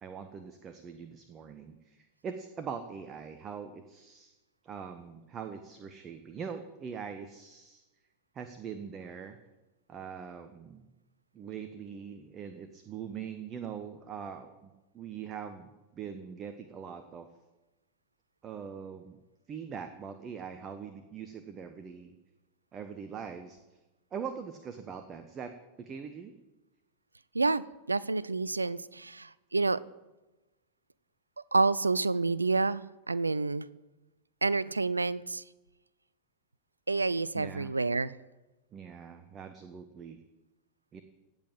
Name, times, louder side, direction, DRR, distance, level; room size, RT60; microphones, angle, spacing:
voice 1, 0.0-4.3 4.6-7.8 8.3-9.4 9.9-10.8 11.3-17.3 18.4-19.2 19.5-22.2 22.7-23.6 24.1-25.5 25.8-26.3 37.3-37.7 38.7-40.2 40.9-41.0, right 7 dB, 25° right, 8 dB, 1.2 m, -42 dB
voice 2, 27.3-29.8 31.5-33.7 34.4-35.4 36.9-38.1, right 3 dB, 80° right, 20 dB, 0.5 m, -29 dB
17.5 x 8.0 x 8.9 m, 1.1 s
figure-of-eight pair, 90°, 0 cm